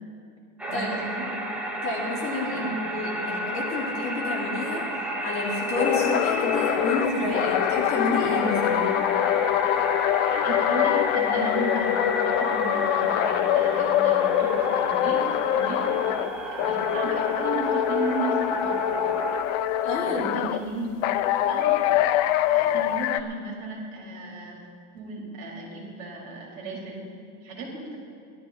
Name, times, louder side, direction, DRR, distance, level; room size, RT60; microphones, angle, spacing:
sound 1, 0.6-19.4, right 1 dB, 5° right, 0.8 m, -32 dB
voice 1, 0.7-1.3 2.5-2.6 2.9-3.3 10.3-15.2 15.5-18.8 20.0-20.9 21.4-22.1 22.4-24.6 24.9-27.1 27.4-28.0, right 2 dB, 55° right, -2 dB, 4.5 m, -35 dB
voice 2, 1.8-4.8 5.2-8.9 19.8-20.3, left 2 dB, 30° left, -5 dB, 3.6 m, -29 dB
sound 2, 5.7-16.3 16.6-20.6 21.0-23.2, left 12 dB, 60° left, 0.7 m, -24 dB
17.5 x 13.0 x 4.4 m, 2.5 s
cardioid pair, 170°, 42 cm